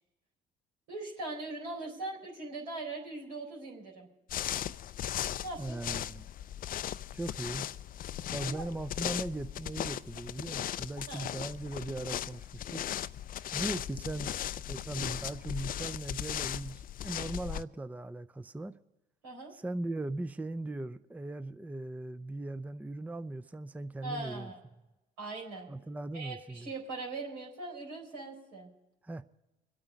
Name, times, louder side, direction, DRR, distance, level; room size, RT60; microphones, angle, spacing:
voice 1, 0.9-4.1 5.4-5.8 8.4-8.7 11.1-11.3 19.2-19.5 24.0-24.6 25.2-25.7 26.1-28.7, right 3 dB, 85° right, 4.2 m, -40 dB
sound 1, 4.3-17.6, left 11 dB, 45° left, 0.4 m, -37 dB
voice 2, 5.6-6.3 7.1-7.6 8.3-12.9 13.5-18.7 19.5-24.5 25.7-26.7 29.0-29.2, right 2 dB, 5° right, 0.5 m, -39 dB
25.0 x 8.8 x 5.1 m
hypercardioid pair, 60°, 21 cm